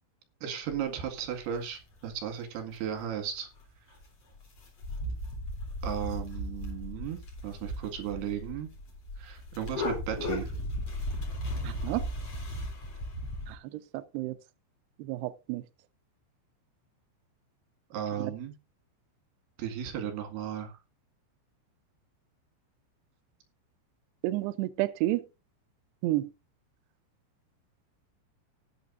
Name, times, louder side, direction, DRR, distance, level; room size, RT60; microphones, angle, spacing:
voice 1, 0.4-3.5 5.8-8.7 9.2-10.5 17.9-18.5 19.6-20.8, right 9 dB, 60° right, 3.7 m, -35 dB
sound 1, 0.7-0.8 1.4-1.6 2.1-2.2 2.6-2.7 2.8-3.3 3.6-3.7 3.9-4.0 4.3-13.6, left 1 dB, 35° left, 3.9 m, -36 dB
voice 2, 11.6-12.0 13.5-14.3 15.1-15.6 18.2-18.3 24.2-25.2 26.0-26.3, right 17 dB, 90° right, 2.4 m, -31 dB
18.5 x 8.7 x 2.6 m
omnidirectional pair, 5.6 m